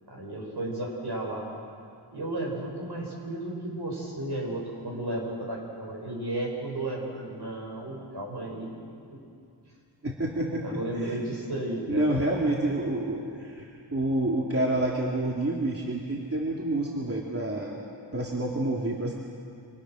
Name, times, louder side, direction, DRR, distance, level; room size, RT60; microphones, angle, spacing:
voice 1, 0.1-1.5 2.1-8.7 9.1-9.2 10.6-12.2, right 1 dB, 60° right, -1 dB, 7.5 m, -33 dB
voice 2, 10.0-10.7 11.0-11.2 11.9-17.9 18.1-19.1, right 1 dB, 30° right, -3 dB, 3.0 m, -28 dB
29.5 x 26.5 x 6.6 m, 2.5 s
wide cardioid pair, 95°, 44 cm